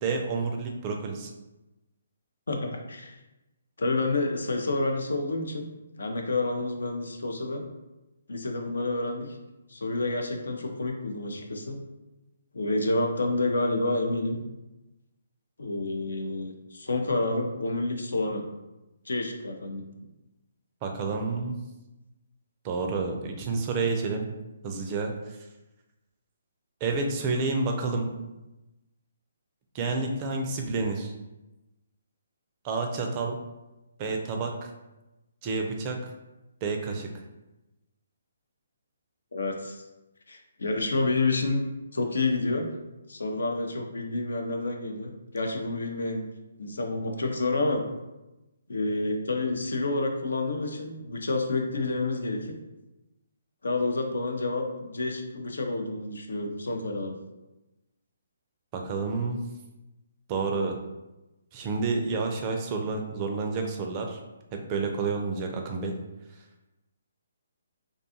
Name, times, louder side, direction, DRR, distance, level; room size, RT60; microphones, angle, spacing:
voice 1, 0.0-1.3 20.8-21.6 22.6-24.3 24.6-25.4 26.8-28.1 29.7-31.1 32.6-33.4 34.0-34.7 35.4-36.0 36.6-37.1 58.7-59.4 60.3-60.8 61.5-64.2 64.5-66.0, right 4 dB, 30° right, 3 dB, 0.4 m, -29 dB
voice 2, 2.5-3.2 3.8-5.7 6.0-7.6 8.3-9.3 9.7-11.8 12.5-14.4 15.6-18.4 19.1-19.8 39.3-39.8 40.3-41.6 41.9-42.6 43.1-46.2 46.6-47.8 48.7-52.5 53.6-57.1, left 2 dB, 75° left, 3 dB, 0.5 m, -29 dB
2.4 x 2.3 x 2.7 m, 1.0 s
figure-of-eight pair, 140°, 0 cm